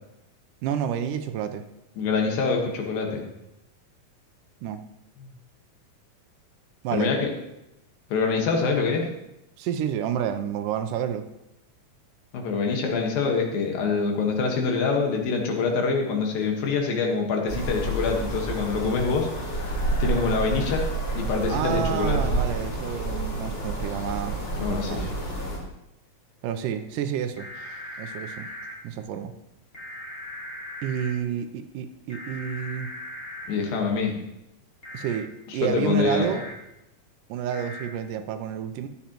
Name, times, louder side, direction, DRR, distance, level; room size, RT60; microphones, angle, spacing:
voice 1, 0.6-1.7 4.6-4.8 6.8-7.1 9.6-11.3 21.5-25.1 26.4-27.5 28.0-28.5 28.8-29.3 30.8-32.9 34.9-36.5 37.3-38.9, right 9 dB, 80° right, 9 dB, 2.1 m, -29 dB
voice 2, 2.0-3.3 5.2-5.3 6.9-7.3 8.1-9.1 12.3-20.9 21.2-22.2 24.6-25.1 33.5-34.2 35.5-36.3, left 4 dB, 85° left, 1 dB, 3.3 m, -25 dB
sound 1, 17.5-25.6, right 2 dB, 55° left, 4.2 m, -29 dB
sound 2, 27.4-28.7 29.7-31.1 32.1-33.5 34.8-35.2 36.2-36.5 37.5-37.9, left 1 dB, 25° left, 1.5 m, -39 dB
14.0 x 10.5 x 3.0 m, 0.86 s
omnidirectional pair, 4.0 m